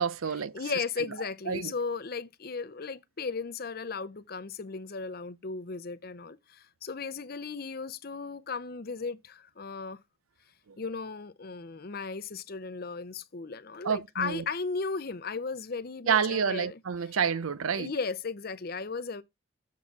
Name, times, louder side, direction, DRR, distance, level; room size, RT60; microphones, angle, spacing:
voice 1, 0.0-0.5 1.5-1.7 13.8-14.4 16.1-17.9, right 6 dB, 85° right, 0.6 m, -28 dB
voice 2, 0.5-10.0 10.8-16.8 17.7-19.2, left 4 dB, 45° left, 0.6 m, -36 dB
7.1 x 4.2 x 4.6 m
head